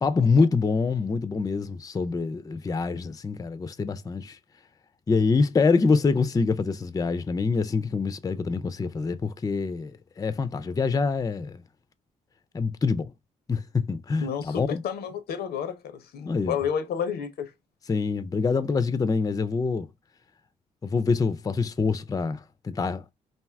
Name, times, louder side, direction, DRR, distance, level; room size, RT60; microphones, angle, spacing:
voice 1, 0.0-4.4 5.1-11.6 12.5-13.1 13.5-14.8 16.3-16.6 17.9-19.9 20.8-23.0, left 4 dB, 20° left, 0.4 m, -25 dB
voice 2, 14.2-17.5, left 7 dB, 75° left, 0.6 m, -31 dB
2.6 x 2.3 x 3.3 m
supercardioid pair, 50°, 17 cm